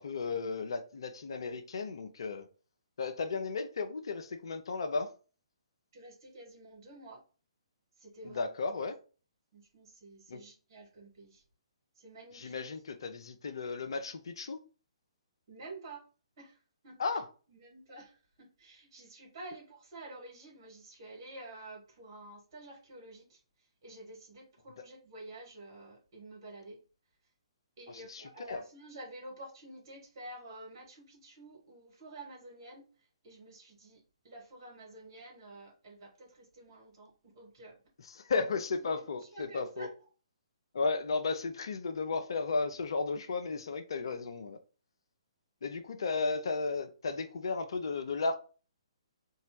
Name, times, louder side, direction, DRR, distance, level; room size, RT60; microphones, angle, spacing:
voice 1, 0.0-2.5 3.0-5.1 8.2-9.0 10.3-10.4 12.3-14.6 17.0-17.3 27.9-28.2 28.5-28.6 38.1-39.9 40.7-44.6 45.6-48.4, left 4 dB, 55° left, 0.6 m, -34 dB
voice 2, 5.9-7.2 8.0-8.5 9.5-11.4 12.0-12.6 15.5-16.0 16.4-17.0 17.5-26.8 27.8-32.9 33.2-37.8 38.9-39.9, right 2 dB, 40° right, 2.3 m, -50 dB
4.1 x 2.8 x 4.5 m
figure-of-eight pair, 130°, 3 cm